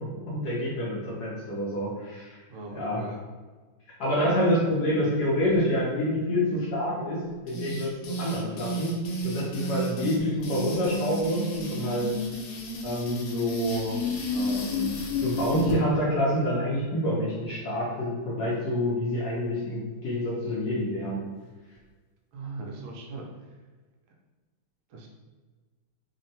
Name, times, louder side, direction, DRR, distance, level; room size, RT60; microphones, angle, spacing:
voice 1, 0.0-2.4 2.7-3.0 4.0-8.9 9.2-12.1 12.8-14.0 14.3-21.3, equal, 70° left, -6 dB, 1.0 m, -27 dB
voice 2, 2.5-3.2 22.3-23.2 24.9-25.1, right 3 dB, 80° right, 0 dB, 1.3 m, -39 dB
sound 1, 7.5-15.8, left 1 dB, 85° left, 1.4 m, -32 dB
3.4 x 2.1 x 2.6 m, 1.4 s
omnidirectional pair, 2.2 m